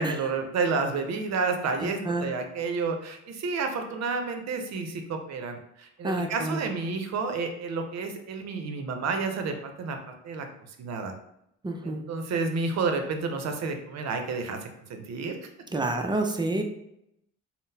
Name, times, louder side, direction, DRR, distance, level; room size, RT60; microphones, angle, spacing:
voice 1, 0.0-10.5 10.8-11.1 11.8-15.5, right 4 dB, 60° right, 5 dB, 0.6 m, -30 dB
voice 2, 1.8-2.3 6.0-6.7 11.6-12.0 15.7-16.6, right 2 dB, 15° right, 4 dB, 0.4 m, -29 dB
3.7 x 2.0 x 2.7 m, 0.79 s
cardioid pair, 90°, 30 cm